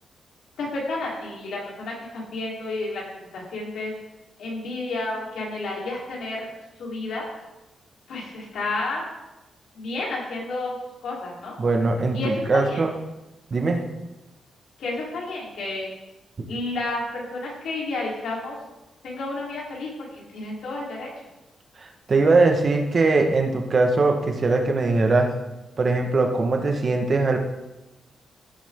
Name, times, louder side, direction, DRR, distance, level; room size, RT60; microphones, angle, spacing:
voice 1, 0.6-3.9 4.4-6.5 6.8-7.3 8.1-9.0 9.7-10.7 11.0-11.5 12.1-12.8 14.8-15.9 16.5-18.6 19.0-21.1, left 2 dB, 80° left, -3 dB, 3.8 m, -31 dB
voice 2, 11.6-12.9 13.5-13.8 21.8-25.3 25.8-27.4, right 3 dB, 40° right, 3 dB, 1.6 m, -21 dB
15.5 x 7.3 x 3.8 m, 1.0 s
cardioid pair, 120°, 0 cm